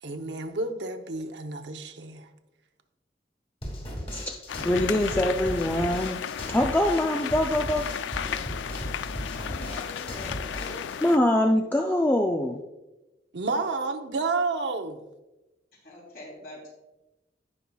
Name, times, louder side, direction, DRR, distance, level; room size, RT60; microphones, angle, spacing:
voice 1, 0.0-2.3 13.3-15.0, right 3 dB, 80° right, 5 dB, 0.8 m, -30 dB
sound 1, 3.6-10.9, equal, 35° left, 2.2 m, -36 dB
voice 2, 4.1-7.9 11.0-12.6, left 1 dB, 10° left, 2 dB, 0.4 m, -24 dB
sound 2, 4.5-11.2, left 9 dB, 90° left, 0.3 m, -35 dB
voice 3, 9.4-10.9 15.8-16.7, left 1 dB, 55° left, -2 dB, 3.1 m, -43 dB
16.0 x 5.5 x 2.3 m, 1.0 s
head